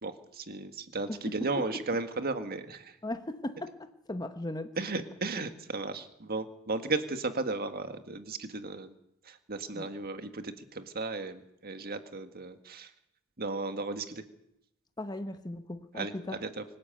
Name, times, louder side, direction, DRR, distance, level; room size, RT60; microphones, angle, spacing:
voice 1, 0.0-3.0 4.8-8.9 9.3-12.9 13.4-14.3 15.9-16.1 16.4-16.6, right 3 dB, 45° right, 8 dB, 1.8 m, -35 dB
voice 2, 3.0-4.7 9.7-9.9 15.0-16.4, left 1 dB, 20° left, 8 dB, 1.1 m, -37 dB
24.5 x 12.0 x 9.1 m, 0.81 s
head